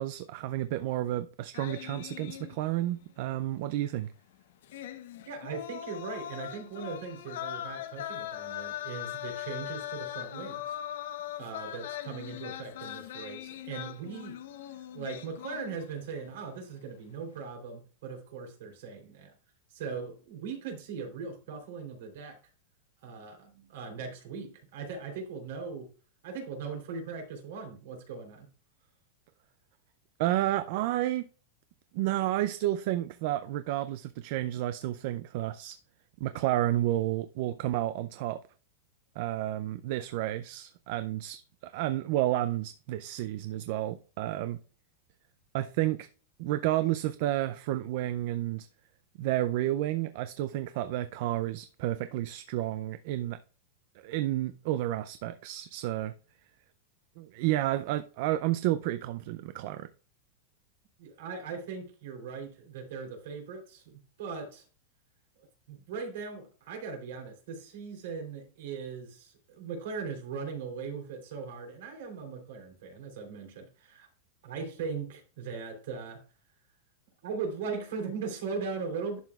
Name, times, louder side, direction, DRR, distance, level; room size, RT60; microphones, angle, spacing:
voice 1, 0.0-4.1 30.2-31.3 31.9-35.8 36.2-38.4 39.2-44.6 45.5-46.1 46.4-48.7 49.2-53.4 54.0-56.1 57.2-59.9, right 14 dB, 50° right, 0.4 m, -31 dB
sound 1, 1.5-2.9 3.2-3.3 4.6-16.1 16.4-16.7, left 12 dB, 70° left, 0.8 m, -40 dB
voice 2, 5.3-10.8 11.4-14.4 14.9-19.3 19.7-22.4 23.0-25.9 26.2-28.5 61.0-64.6 65.7-74.1 74.4-76.2 77.2-79.2, right 5 dB, 65° right, 3.4 m, -39 dB
11.0 x 5.9 x 2.4 m
supercardioid pair, 160°, 0 cm